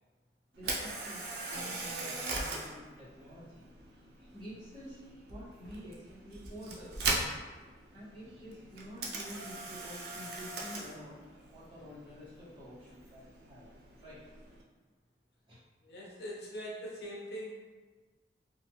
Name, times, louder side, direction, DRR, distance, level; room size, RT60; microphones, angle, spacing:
voice 1, 0.5-7.1 7.9-11.2 11.5-14.2 15.5-15.6, equal, 25° right, -12 dB, 1.1 m, -49 dB
Camera, 0.5-14.6, right 2 dB, 60° right, 0.4 m, -40 dB
voice 2, 15.8-17.6, equal, 60° left, -4 dB, 0.6 m, -42 dB
2.4 x 2.3 x 2.9 m, 1.3 s
head